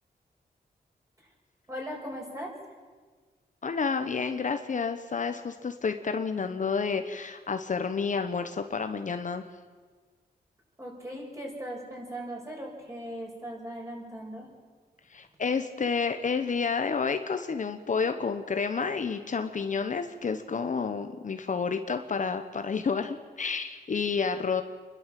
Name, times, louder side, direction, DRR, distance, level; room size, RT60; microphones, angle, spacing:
voice 1, 1.7-2.5 10.8-14.5, equal, 20° right, -1 dB, 6.5 m, -38 dB
voice 2, 3.6-9.4 15.1-24.6, left 5 dB, 50° left, 7 dB, 1.1 m, -30 dB
28.5 x 12.0 x 7.7 m, 1.5 s
wide cardioid pair, 110°, 17 cm